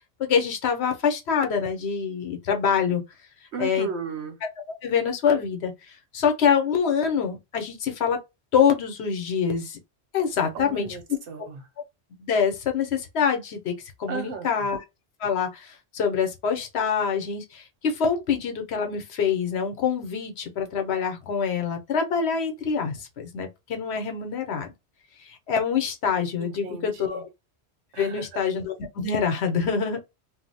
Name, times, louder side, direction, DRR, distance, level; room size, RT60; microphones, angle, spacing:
voice 1, 0.2-3.0 3.6-3.9 4.8-5.7 6.1-8.2 8.5-9.8 10.1-10.9 12.2-13.7 14.0-14.8 15.2-24.7 25.5-27.3 28.0-30.0, left 6 dB, 75° left, 1.0 m, -25 dB
voice 2, 3.5-4.4 10.5-11.6 14.1-14.7 26.4-27.2 27.9-28.3, right 5 dB, 85° right, 1.1 m, -35 dB
2.6 x 2.0 x 3.9 m
omnidirectional pair, 1.1 m